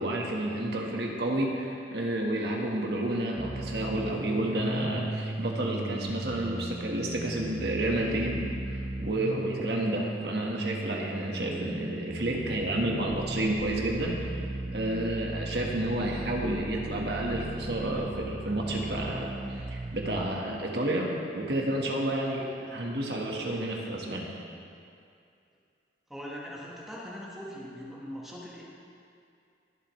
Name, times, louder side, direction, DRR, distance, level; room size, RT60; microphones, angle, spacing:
voice 1, 0.0-14.3 14.7-24.3, right 1 dB, 65° right, -1 dB, 1.5 m, -30 dB
sound 1, 3.4-20.3, right 2 dB, 30° right, 0.4 m, -37 dB
voice 2, 26.1-28.6, equal, ahead, -5 dB, 1.4 m, -41 dB
21.5 x 7.7 x 3.2 m, 2.4 s
head